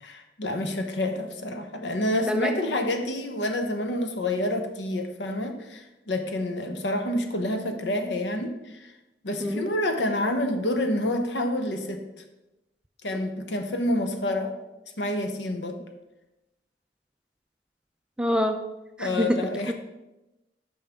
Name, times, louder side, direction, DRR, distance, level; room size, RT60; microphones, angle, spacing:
voice 1, 0.0-8.9 9.2-12.0 13.0-14.5 15.0-15.8 19.0-19.7, left 1 dB, 80° left, 6 dB, 0.9 m, -28 dB
voice 2, 18.2-18.6 19.0-19.7, equal, 5° right, 5 dB, 0.4 m, -26 dB
8.9 x 5.4 x 3.5 m, 0.99 s
head